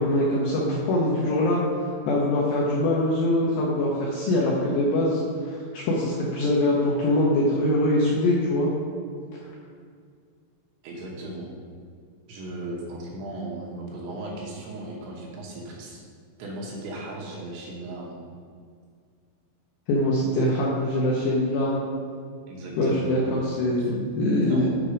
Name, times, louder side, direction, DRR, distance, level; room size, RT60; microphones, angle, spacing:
voice 1, 0.0-1.6 2.1-8.7 9.4-9.5 19.9-21.8 22.8-24.7, left 1 dB, 75° left, -4 dB, 2.6 m, -23 dB
voice 2, 10.8-11.5 12.3-16.0 16.4-18.2 22.5-23.1 23.8-23.9 24.5-24.7, right 2 dB, 75° right, -3 dB, 3.1 m, -36 dB
8.4 x 5.4 x 5.1 m, 2.1 s
omnidirectional pair, 6.0 m